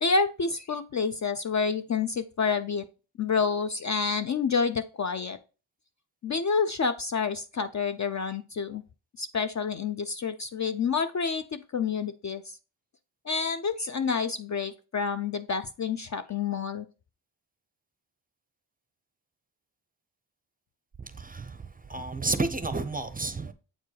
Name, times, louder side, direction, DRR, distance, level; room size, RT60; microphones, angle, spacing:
voice 1, 0.0-2.9 3.2-5.4 6.2-8.8 9.2-12.6 13.3-16.9, left 5 dB, 40° left, 0.4 m, -28 dB
voice 2, 21.2-21.6 21.9-23.5, right 3 dB, 20° right, 0.5 m, -30 dB
7.7 x 4.5 x 3.2 m
cardioid pair, 80°, 49 cm